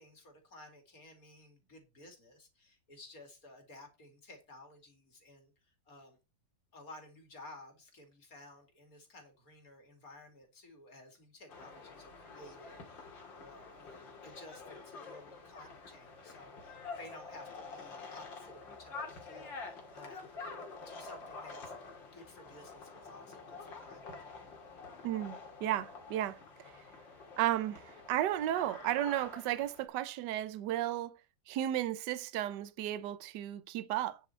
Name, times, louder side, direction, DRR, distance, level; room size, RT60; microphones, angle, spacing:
voice 1, 0.0-6.2 6.7-20.2 20.8-21.7 22.1-24.2, left 2 dB, 45° left, 3.2 m, -55 dB
sound 1, 11.5-29.9, left 4 dB, 70° left, 3.0 m, -48 dB
voice 2, 25.0-26.7 27.4-31.1 31.5-34.2, right 13 dB, 70° right, 1.3 m, -34 dB
9.5 x 6.9 x 4.5 m
omnidirectional pair, 2.1 m